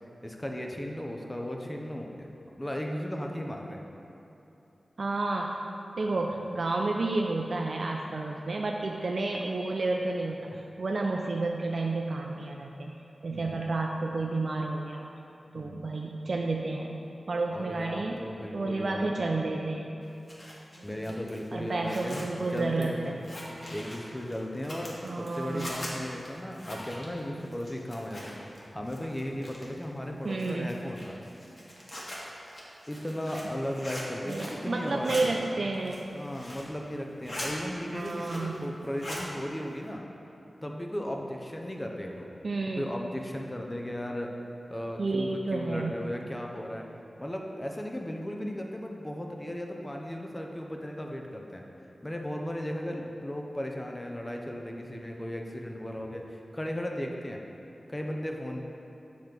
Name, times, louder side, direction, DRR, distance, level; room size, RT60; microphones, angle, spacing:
voice 1, 0.2-2.3 2.6-3.8 13.3-13.6 15.5-15.9 17.5-19.4 20.8-23.3 23.7-31.2 32.9-35.4 36.1-40.0 40.6-42.3 42.8-44.3 44.7-46.9 47.2-51.6 52.0-57.4 57.9-58.6, equal, 15° left, 1 dB, 0.6 m, -36 dB
voice 2, 5.0-5.6 6.0-12.9 13.2-15.1 15.5-18.2 18.5-20.1 20.8-20.9 21.5-23.1 25.0-26.0 30.2-30.7 34.3-36.1 37.9-38.7 42.4-42.8 45.0-46.0, right 2 dB, 65° right, 0 dB, 0.3 m, -31 dB
Zipper (clothing), 20.0-28.6 28.9-29.8 30.3-34.6 34.9-35.2 35.7-36.7 37.0-37.5 37.9-38.6 38.8-39.3, left 1 dB, 45° left, 1.2 m, -42 dB
7.5 x 3.1 x 5.1 m, 2.9 s
wide cardioid pair, 80°, 0 cm